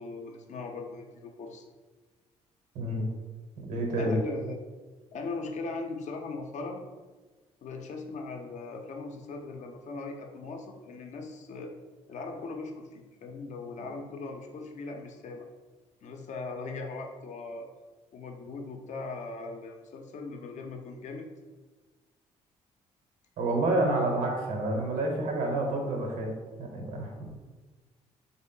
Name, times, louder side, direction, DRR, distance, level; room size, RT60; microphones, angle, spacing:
voice 1, 0.0-1.6 4.0-4.6 5.1-6.8 7.6-11.7 12.1-15.5 16.0-17.7 18.1-21.3, left 3 dB, 60° left, 3 dB, 0.5 m, -39 dB
voice 2, 2.7-3.1 3.6-4.2 23.4-26.3 26.6-27.3, right 2 dB, 75° right, 1 dB, 0.8 m, -29 dB
3.6 x 2.0 x 3.7 m, 1.3 s
supercardioid pair, 60°, 14 cm